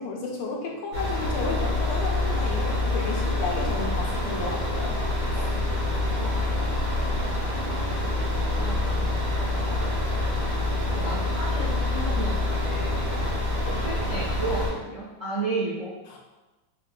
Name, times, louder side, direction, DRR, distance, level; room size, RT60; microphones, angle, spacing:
voice 1, 0.0-5.0 5.3-5.5 13.1-13.2 16.1-16.2, left 3 dB, 80° left, -1 dB, 1.4 m, -33 dB
sound 1, 0.9-14.7, left 2 dB, 80° right, 2.1 m, -26 dB
voice 2, 6.2-6.7 7.3-8.3 8.6-10.0 10.9-13.0 13.6-15.9, right 2 dB, 25° right, -11 dB, 0.8 m, -34 dB
4.5 x 2.5 x 2.2 m, 1.1 s
omnidirectional pair, 2.4 m